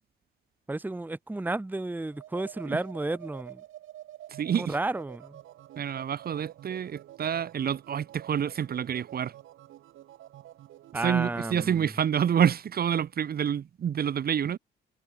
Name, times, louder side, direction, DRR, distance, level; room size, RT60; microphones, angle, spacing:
voice 1, 0.7-3.6 4.6-5.4 10.9-11.9, right 2 dB, 10° right, 0.9 m, -32 dB
sound 1, 2.1-11.9, right 13 dB, 80° right, 2.4 m, -48 dB
voice 2, 4.4-4.7 5.8-9.3 11.0-14.6, right 8 dB, 50° right, 1.2 m, -28 dB
cardioid pair, 90°, 20 cm